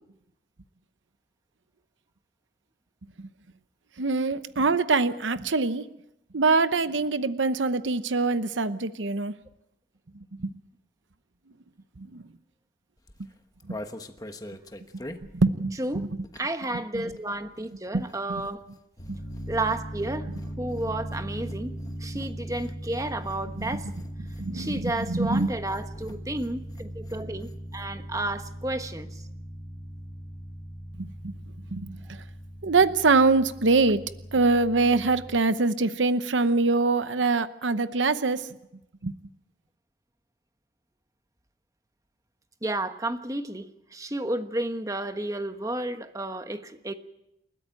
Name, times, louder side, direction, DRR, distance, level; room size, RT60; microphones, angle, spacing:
voice 1, 4.0-5.8 6.3-9.3 10.3-10.6 12.0-12.2 13.7-13.8 15.3-16.1 16.9-17.1 17.9-18.0 18.3-18.4 19.1-19.2 23.6-23.7 24.4-25.5 30.9-31.3 31.7-32.2 32.6-34.0 34.3-38.5 39.0-39.1, right 3 dB, 90° right, 12 dB, 0.9 m, -24 dB
sound 1, 13.0-16.7 17.0-27.9 28.2-28.3 28.5-28.8, left 1 dB, 20° left, 1.2 m, -46 dB
voice 2, 16.4-18.7 19.5-20.3 20.6-21.7 22.0-23.9 24.5-29.2 42.6-46.9, right 1 dB, 20° right, 8 dB, 1.3 m, -32 dB
sound 2, 19.0-35.4, equal, 50° left, 2.9 m, -39 dB
29.5 x 13.5 x 9.1 m, 0.85 s
head